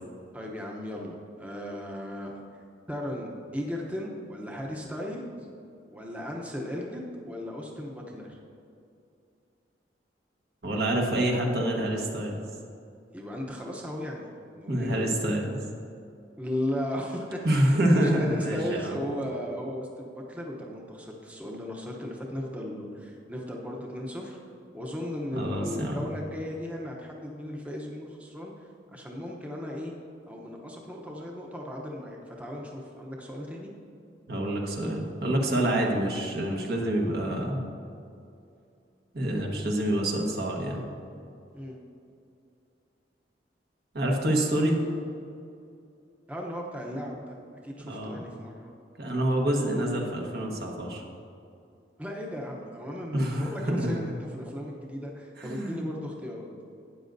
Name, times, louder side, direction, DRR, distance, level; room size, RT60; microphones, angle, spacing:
voice 1, 0.3-2.4 2.9-5.2 5.9-8.4 13.1-15.0 16.4-24.4 24.7-29.9 30.3-33.7 41.5-41.8 46.3-47.4 47.6-48.7 52.0-56.5, left 1 dB, 10° right, -1 dB, 0.8 m, -36 dB
voice 2, 10.6-12.4 14.7-15.6 17.4-18.9 25.3-26.0 34.3-37.6 39.1-40.8 43.9-44.8 47.9-48.2 49.0-51.0 53.1-54.0 55.4-55.9, right 1 dB, 60° right, 0 dB, 1.3 m, -27 dB
12.5 x 9.1 x 2.6 m, 2.6 s
head